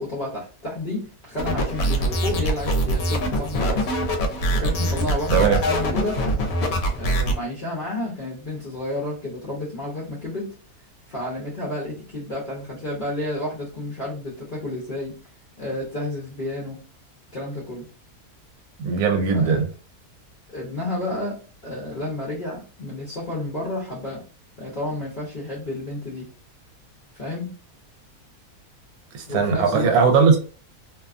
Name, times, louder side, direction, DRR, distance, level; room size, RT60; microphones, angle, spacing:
voice 1, 0.0-3.9 4.5-6.3 6.9-10.5 11.1-15.2 15.6-16.8 17.3-17.9 19.3-19.5 20.5-24.2 24.6-26.3 27.1-27.5 29.3-30.0, left 1 dB, 45° left, 0.7 m, -31 dB
sound 1, 1.4-7.4, equal, 75° left, 1.0 m, -23 dB
voice 2, 18.8-19.7 29.1-30.4, right 5 dB, 80° right, 1.1 m, -19 dB
2.7 x 2.2 x 2.4 m
omnidirectional pair, 1.6 m